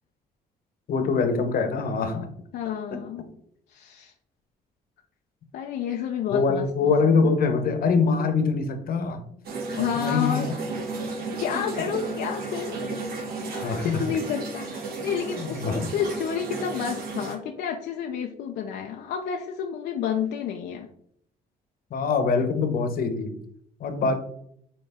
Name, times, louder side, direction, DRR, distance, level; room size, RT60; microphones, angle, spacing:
voice 1, 0.9-2.3 2.9-3.0 6.3-9.2 10.0-10.5 11.3-11.6 13.6-14.0 15.4-15.9 21.9-23.4 23.8-24.2, left 4 dB, 65° left, 7 dB, 1.1 m, -24 dB
voice 2, 2.5-3.2 3.7-4.1 5.5-6.9 9.7-10.4 11.1-13.0 13.5-20.9 24.0-24.2, left 8 dB, 80° left, 3 dB, 0.6 m, -30 dB
sound 1, 9.4-17.3, right 3 dB, 65° right, 1.7 m, -33 dB
8.8 x 3.1 x 3.6 m, 0.68 s
cardioid pair, 105°, 17 cm